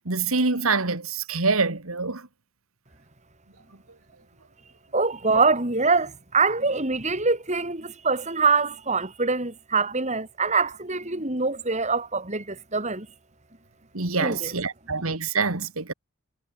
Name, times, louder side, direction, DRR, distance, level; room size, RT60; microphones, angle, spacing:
voice 1, 0.0-2.3 13.9-15.9, right 4 dB, 75° right, 2.3 m, -25 dB
voice 2, 4.9-13.1 14.2-14.5, right 4 dB, 35° right, 4.0 m, -24 dB
head